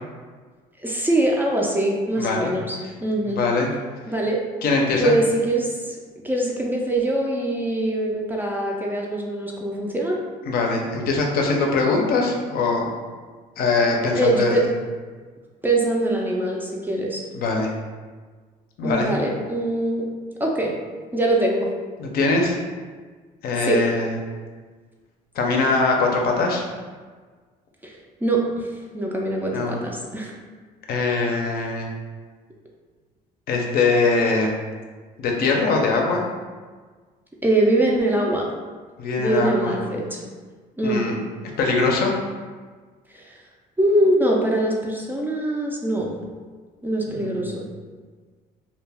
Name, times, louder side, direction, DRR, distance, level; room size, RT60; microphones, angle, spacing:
voice 1, 0.8-3.4 4.1-4.4 5.0-6.0 6.2-10.2 14.2-14.6 15.6-17.2 18.8-20.1 20.4-20.8 21.1-21.7 23.6-23.8 27.8-27.9 28.2-30.3 37.4-38.5 39.2-40.2 40.8-41.1 43.1-43.3 43.8-46.1 46.8-47.6, right 1 dB, 10° right, -2 dB, 0.3 m, -23 dB
voice 2, 2.2-2.5 3.2-3.7 4.6-5.1 10.5-12.9 13.6-14.6 17.3-17.7 18.8-19.1 22.0-22.6 23.4-24.2 25.4-26.6 29.5-29.8 30.9-31.9 33.5-34.6 35.2-36.2 39.0-39.7 40.8-41.2 41.6-42.1 47.1-47.6, left 3 dB, 65° left, 1 dB, 0.5 m, -22 dB
2.2 x 2.1 x 3.3 m, 1.5 s
cardioid pair, 110°, 17 cm